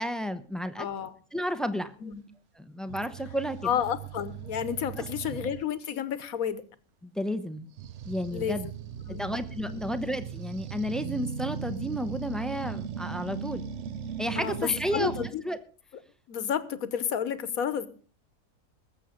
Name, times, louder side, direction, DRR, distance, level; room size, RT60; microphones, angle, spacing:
voice 1, 0.0-0.9 1.3-1.9 2.6-3.7 5.0-5.1 7.0-7.7 8.0-8.7 9.1-13.7 14.2-15.2 15.4-15.6, equal, ahead, 10 dB, 0.3 m, -32 dB
voice 2, 0.8-1.1 2.0-2.2 3.6-6.6 8.3-8.6 9.1-9.3 9.7-9.9 14.4-15.4 16.3-17.9, left 8 dB, 65° left, 14 dB, 1.4 m, -31 dB
sound 1, 2.9-5.7 7.8-15.3, right 7 dB, 55° right, 1.0 m, -38 dB
20.0 x 7.6 x 5.1 m, 0.40 s
omnidirectional pair, 1.7 m